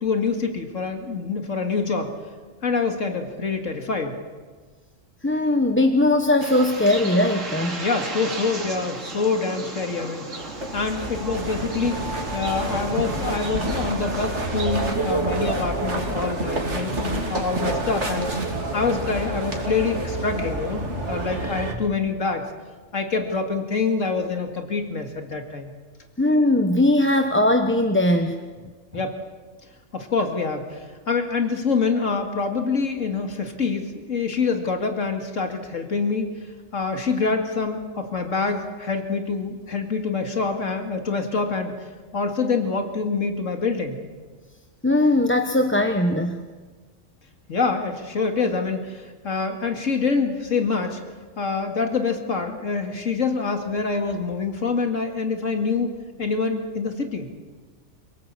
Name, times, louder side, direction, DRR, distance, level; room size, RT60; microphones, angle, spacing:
voice 1, 0.0-2.1 2.6-4.2 7.8-12.0 12.3-18.3 18.7-22.4 22.9-25.7 28.9-29.2 29.9-36.3 36.7-41.7 42.1-44.0 47.5-51.0 51.4-57.3, left 4 dB, 90° left, 5 dB, 2.6 m, -26 dB
voice 2, 5.2-7.8 26.2-28.4 44.8-46.4, left 1 dB, 10° left, 5 dB, 1.0 m, -19 dB
Bird, 6.4-14.9, right 3 dB, 85° right, 3.0 m, -36 dB
sound 1, 10.3-21.7, right 2 dB, 65° right, 3.2 m, -28 dB
27.0 x 18.0 x 8.5 m, 1.4 s
omnidirectional pair, 1.3 m